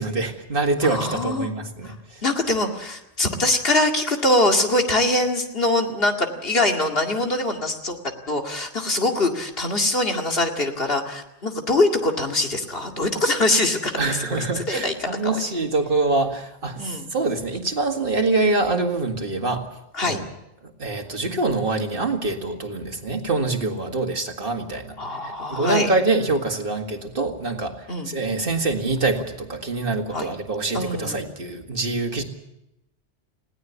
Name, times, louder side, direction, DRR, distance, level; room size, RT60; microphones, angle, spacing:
voice 1, 0.0-2.2 14.0-19.7 20.0-20.2 20.6-25.0 25.2-32.2, right 3 dB, 55° right, 4 dB, 2.2 m, -25 dB
voice 2, 0.8-1.5 1.8-2.0 2.2-8.0 8.3-15.5 16.8-17.1 19.9-20.2 25.0-25.9 27.9-28.1 30.1-30.3 30.7-31.2, left 2 dB, 55° left, 3 dB, 2.4 m, -23 dB
20.5 x 16.5 x 8.3 m, 0.88 s
omnidirectional pair, 1.1 m